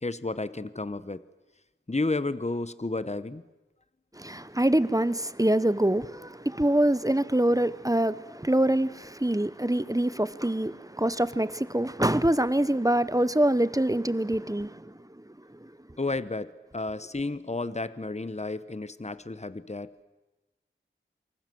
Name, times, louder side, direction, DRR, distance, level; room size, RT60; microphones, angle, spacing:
voice 1, 0.0-1.2 1.9-3.4 16.0-20.0, left 2 dB, 35° left, 1.0 m, -32 dB
voice 2, 4.2-14.8, right 1 dB, 15° right, 1.0 m, -25 dB
28.0 x 25.0 x 7.8 m
wide cardioid pair, 40°, 21 cm